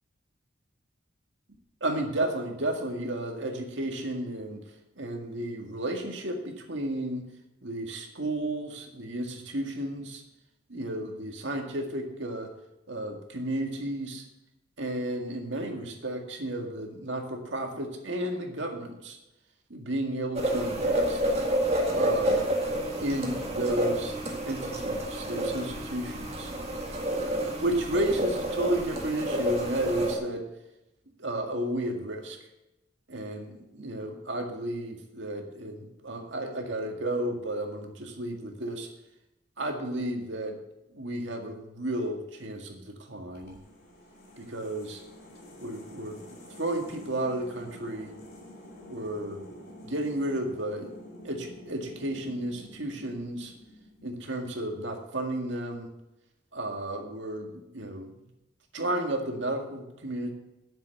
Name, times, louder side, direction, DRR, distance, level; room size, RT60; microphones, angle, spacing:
voice 1, 1.8-4.6 5.0-7.2 7.6-10.2 10.7-12.5 12.9-14.2 14.8-19.2 19.7-21.2 21.9-22.5 23.0-24.2 24.5-26.5 27.6-30.5 31.2-32.4 33.1-38.9 39.6-40.6 40.9-43.6 44.4-45.0 45.6-46.2 46.6-48.1 48.9-49.4 49.8-50.9 51.2-53.5 54.0-55.9 56.5-58.1 58.7-60.3, right 1 dB, 70° right, 3 dB, 1.9 m, -32 dB
sound 1, 20.3-30.1, right 1 dB, 30° right, 1.9 m, -29 dB
sound 2, 43.4-54.4, equal, 50° left, 2.9 m, -48 dB
10.0 x 7.4 x 7.7 m, 0.93 s
head